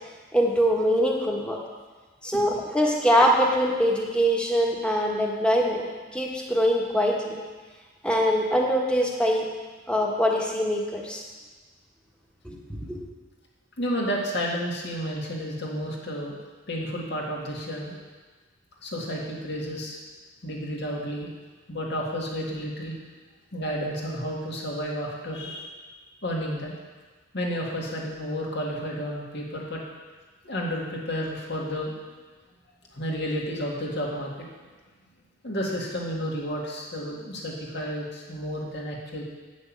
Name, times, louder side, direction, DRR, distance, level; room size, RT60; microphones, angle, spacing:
voice 1, 0.3-1.6 2.2-5.8 6.1-7.4 8.0-9.4 9.9-11.2 12.4-12.6 12.9-13.0, equal, 5° left, -1 dB, 1.3 m, -23 dB
voice 2, 13.8-16.4 16.7-18.0 18.8-20.0 20.4-21.3 21.7-22.9 23.5-25.7 26.2-26.8 27.3-29.8 30.4-31.9 32.9-34.5 35.4-39.2, equal, 60° left, -2 dB, 2.0 m, -31 dB
8.8 x 6.3 x 7.4 m, 1.4 s
head